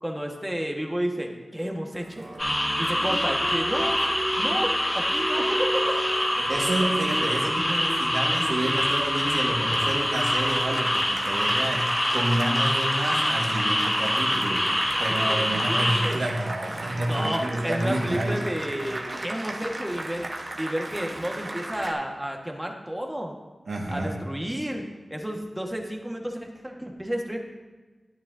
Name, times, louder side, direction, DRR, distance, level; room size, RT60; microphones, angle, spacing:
voice 1, 0.0-2.2 2.8-4.0 4.4-6.0 15.1-16.2 17.1-20.3 20.6-23.3 23.9-24.8 25.1-27.4, equal, 10° right, 1 dB, 1.6 m, -31 dB
Applause, 1.9-21.9, right 1 dB, 55° right, 1.3 m, -35 dB
sound 1, 2.4-16.1, equal, 25° left, 2.1 m, -25 dB
voice 2, 6.5-18.4 23.7-24.2, right 1 dB, 85° right, -2 dB, 1.8 m, -29 dB
13.5 x 9.5 x 2.8 m, 1.3 s
cardioid pair, 40°, 0 cm